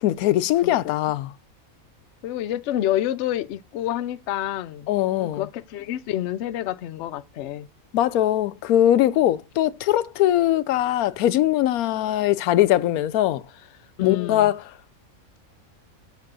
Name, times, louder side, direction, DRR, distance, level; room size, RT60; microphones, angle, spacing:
voice 1, 0.0-1.3 4.9-5.4 7.9-13.4 14.0-14.6, left 13 dB, 90° left, 1.0 m, -21 dB
voice 2, 0.6-1.0 2.2-4.9 5.2-7.7 14.0-14.5, left 12 dB, 65° left, 0.8 m, -28 dB
7.5 x 3.6 x 6.0 m
omnidirectional pair, 1.5 m